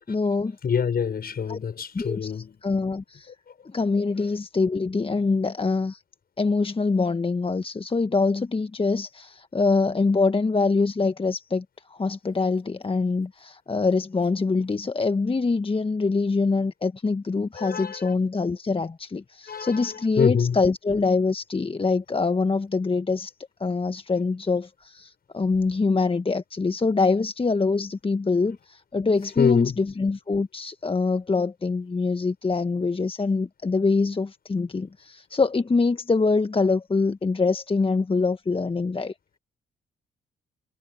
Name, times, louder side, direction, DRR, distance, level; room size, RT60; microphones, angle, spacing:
voice 1, 0.0-0.6 1.5-1.6 1.9-3.3 3.6-6.0 6.4-23.3 23.6-39.1, left 4 dB, 30° left, 1.4 m, -24 dB
voice 2, 0.6-2.6 17.6-18.1 19.5-19.9 20.2-20.6 29.4-29.8, left 7 dB, 50° left, 6.0 m, -25 dB
hypercardioid pair, 45°, 20 cm